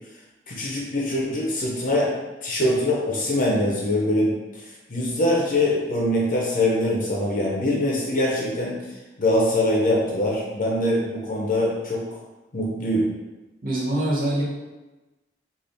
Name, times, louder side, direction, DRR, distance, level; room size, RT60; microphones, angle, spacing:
voice 1, 0.5-2.1 2.4-4.6 4.9-8.7 9.2-12.0 12.5-13.1, left 1 dB, 45° left, -3 dB, 0.6 m, -23 dB
voice 2, 13.6-14.4, right 1 dB, 50° right, -6 dB, 1.1 m, -24 dB
3.5 x 2.4 x 3.9 m, 1.1 s
head